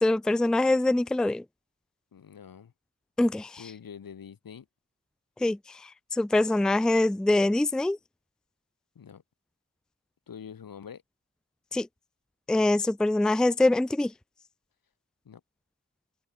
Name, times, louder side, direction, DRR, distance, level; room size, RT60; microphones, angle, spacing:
voice 1, 0.0-1.4 3.2-3.6 5.4-5.6 6.1-8.0 11.7-11.9 12.5-14.1, left 2 dB, ahead, 0.4 m, -24 dB
voice 2, 2.1-2.7 3.6-4.7 9.0-9.2 10.3-11.0 15.3-15.4, left 7 dB, 90° left, 3.5 m, -45 dB
wide cardioid pair, 80°, 33 cm